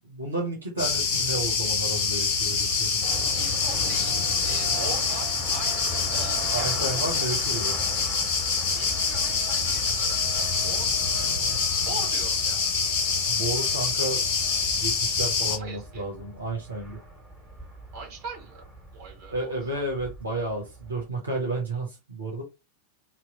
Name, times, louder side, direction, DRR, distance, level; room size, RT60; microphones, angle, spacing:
voice 1, 0.1-3.3 6.5-7.8 13.3-14.3 14.8-17.0 19.3-22.4, right 2 dB, 75° right, -1 dB, 1.0 m, -32 dB
sound 1, 0.8-15.6, left 5 dB, 50° left, 0.9 m, -26 dB
sound 2, 3.0-21.1, equal, 10° right, 1.9 m, -40 dB
voice 2, 3.3-5.8 6.1-7.4 8.7-11.0 11.8-12.6 15.4-16.1 17.9-18.6 18.9-19.8, right 5 dB, 45° right, -1 dB, 1.9 m, -41 dB
3.0 x 2.4 x 3.7 m, 0.25 s
figure-of-eight pair, 90°, 0 cm